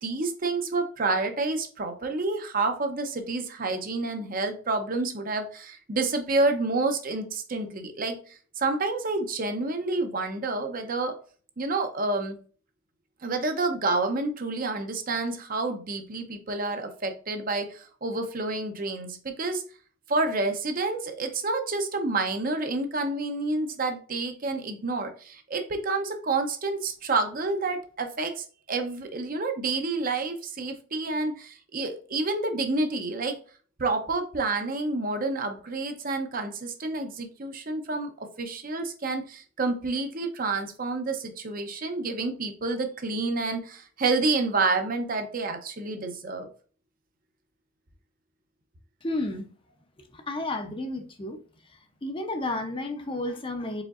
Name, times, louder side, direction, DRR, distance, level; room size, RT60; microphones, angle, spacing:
voice 1, 0.0-11.2 11.6-12.4 13.2-19.6 20.1-33.4 33.8-46.5, right 3 dB, 45° right, 6 dB, 0.7 m, -29 dB
voice 2, 49.0-49.5 50.1-51.4 52.0-53.8, left 2 dB, 25° left, 6 dB, 0.6 m, -31 dB
4.9 x 3.8 x 2.4 m, 0.40 s
head